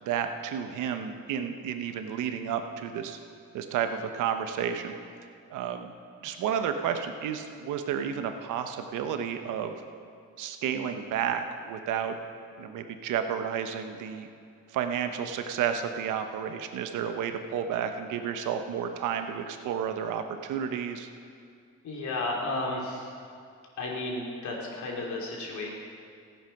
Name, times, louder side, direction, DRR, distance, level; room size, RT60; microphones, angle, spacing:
voice 1, 0.0-3.2 3.5-4.9 5.5-5.9 6.2-9.7 10.4-12.2 12.6-14.3 14.7-21.1, right 8 dB, 90° right, 7 dB, 1.0 m, -31 dB
voice 2, 21.8-23.1 23.8-25.7, left 2 dB, 70° left, -2 dB, 3.3 m, -33 dB
15.0 x 9.0 x 5.9 m, 2.3 s
cardioid pair, 90°, 30 cm